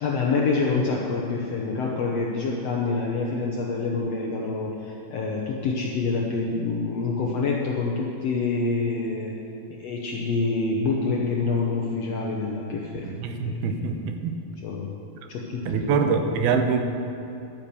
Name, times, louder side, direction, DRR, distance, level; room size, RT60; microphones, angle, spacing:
voice 1, 0.0-9.3 9.7-13.7 14.6-15.0 15.3-16.2, left 4 dB, 75° left, -2 dB, 1.5 m, -27 dB
voice 2, 13.0-14.4 15.7-16.8, right 5 dB, 90° right, 6 dB, 2.8 m, -24 dB
12.0 x 8.7 x 6.9 m, 2.8 s
omnidirectional pair, 4.3 m